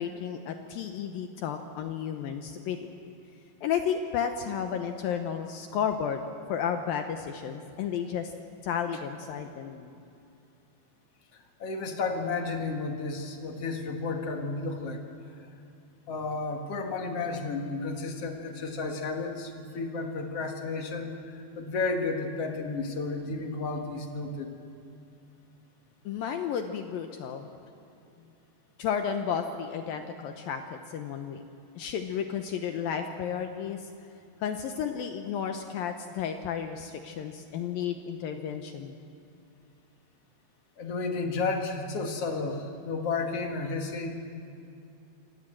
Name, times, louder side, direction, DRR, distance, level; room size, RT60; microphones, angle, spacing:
voice 1, 0.0-3.1 3.6-6.2 6.5-8.3 8.6-9.9 26.1-27.5 28.8-31.4 31.8-33.9 34.4-39.0, left 8 dB, 75° left, 6 dB, 2.2 m, -32 dB
voice 2, 11.6-15.0 16.1-24.5 40.8-44.2, left 3 dB, 55° left, 3 dB, 1.8 m, -32 dB
26.5 x 18.5 x 7.7 m, 2.6 s
omnidirectional pair, 5.3 m